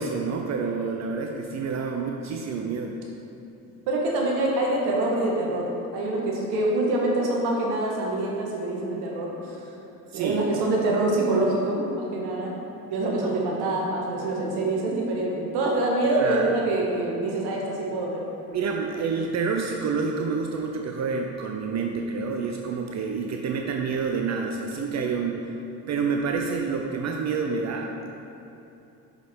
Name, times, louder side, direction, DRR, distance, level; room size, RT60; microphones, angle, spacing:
voice 1, 0.0-3.0 10.1-10.4 13.2-13.4 16.2-16.5 18.5-25.5 25.9-28.1, right 5 dB, 40° right, 2 dB, 0.6 m, -28 dB
voice 2, 3.9-9.6 10.1-12.5 12.9-18.3, right 2 dB, 60° right, -2 dB, 1.4 m, -25 dB
6.2 x 5.6 x 4.3 m, 2.8 s
hypercardioid pair, 55°, 45 cm